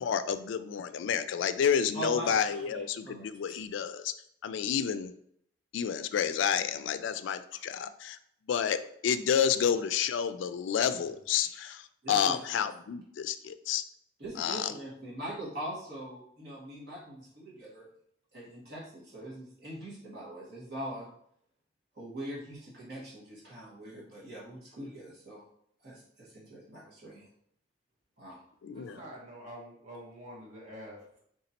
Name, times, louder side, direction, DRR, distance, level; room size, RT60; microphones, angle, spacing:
voice 1, 0.0-4.1 4.4-5.1 5.7-8.2 8.5-13.8 14.4-14.7 28.6-29.0, left 7 dB, 80° left, 12 dB, 0.3 m, -30 dB
voice 2, 1.9-3.3 12.0-12.4 14.2-17.9 18.3-21.1 22.0-25.5 25.8-27.3 28.2-28.4 28.9-29.0, right 1 dB, 55° right, -6 dB, 1.6 m, -42 dB
voice 3, 10.9-11.6 28.7-31.2, equal, 40° right, -4 dB, 1.3 m, -48 dB
4.0 x 3.6 x 2.9 m, 0.69 s
head